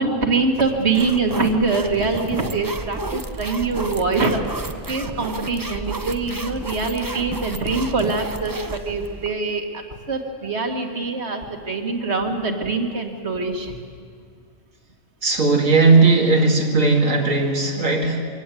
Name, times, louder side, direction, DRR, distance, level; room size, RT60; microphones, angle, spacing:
voice 1, 0.0-4.4 4.9-9.8 10.1-13.8, right 3 dB, 50° right, 4 dB, 2.2 m, -24 dB
sound 1, 0.6-9.3, right 2 dB, 20° right, 0.6 m, -32 dB
voice 2, 15.2-18.2, right 3 dB, 65° right, 1 dB, 2.6 m, -17 dB
24.0 x 17.5 x 8.5 m, 2.1 s
omnidirectional pair, 1.4 m